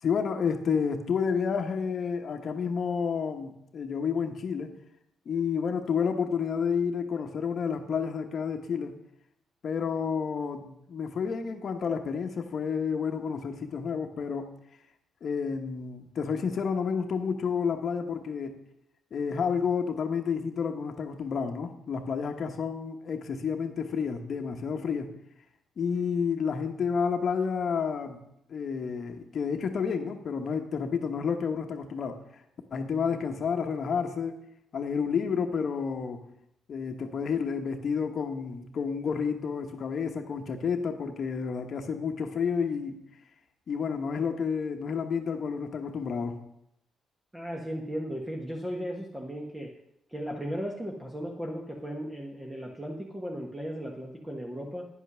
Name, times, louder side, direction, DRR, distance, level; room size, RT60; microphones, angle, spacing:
voice 1, 0.0-4.7 5.3-9.0 9.6-14.6 15.2-18.6 19.1-25.1 25.8-32.2 32.7-34.4 34.7-36.2 36.7-43.0 43.7-46.4, left 6 dB, 55° left, 5 dB, 1.0 m, -30 dB
voice 2, 47.3-49.7 50.1-54.9, equal, 10° right, -1 dB, 1.3 m, -36 dB
9.8 x 5.4 x 6.1 m, 0.77 s
cardioid pair, 90°, 0 cm